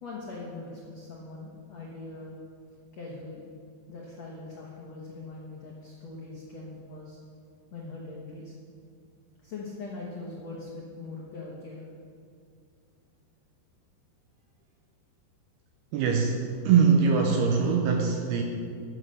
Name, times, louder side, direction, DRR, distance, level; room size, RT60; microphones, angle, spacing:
voice 1, 0.0-2.3 2.9-3.4 3.9-7.2 7.7-8.5 9.4-11.8, left 3 dB, 80° left, -3 dB, 1.5 m, -41 dB
voice 2, 15.9-18.4, right 6 dB, 80° right, 3 dB, 2.4 m, -23 dB
10.0 x 9.7 x 6.6 m, 2.4 s
omnidirectional pair, 5.3 m